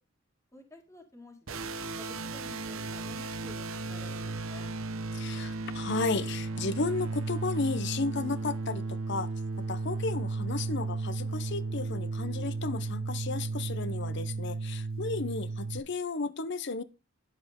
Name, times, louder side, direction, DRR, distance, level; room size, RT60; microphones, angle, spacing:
voice 1, 0.5-4.7, left 1 dB, 15° left, 2.1 m, -52 dB
sound 1, 1.5-15.8, right 3 dB, 75° right, 0.9 m, -34 dB
voice 2, 5.1-9.3 9.7-16.8, left 3 dB, 55° left, 0.7 m, -33 dB
10.5 x 7.6 x 3.6 m
head